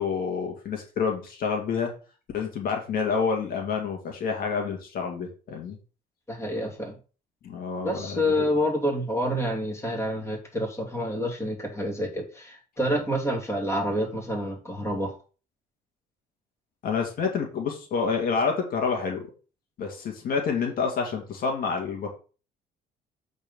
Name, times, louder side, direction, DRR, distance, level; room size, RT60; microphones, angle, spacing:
voice 1, 0.0-1.9 2.3-5.8 7.4-8.5 16.8-19.3 19.8-22.1, left 5 dB, 60° left, 2 dB, 2.2 m, -28 dB
voice 2, 6.3-6.9 7.8-15.2, equal, 15° left, 0 dB, 2.7 m, -28 dB
8.0 x 4.1 x 5.4 m, 0.36 s
cardioid pair, 110°, 17 cm